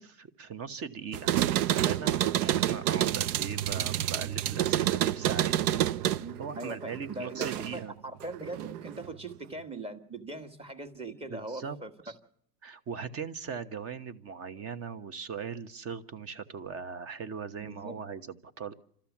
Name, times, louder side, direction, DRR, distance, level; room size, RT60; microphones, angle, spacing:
voice 1, 0.0-1.4 1.7-5.8 6.4-7.9 11.3-11.8 12.0-12.1 12.6-18.7, right 6 dB, 30° right, 12 dB, 1.2 m, -39 dB
sound 1, 1.1-7.8 8.2-9.0, right 12 dB, 65° right, 0.8 m, -28 dB
voice 2, 6.2-11.9 17.6-18.0, right 2 dB, 10° right, 9 dB, 1.6 m, -41 dB
28.0 x 13.5 x 7.3 m, 0.69 s
hypercardioid pair, 115°, 48 cm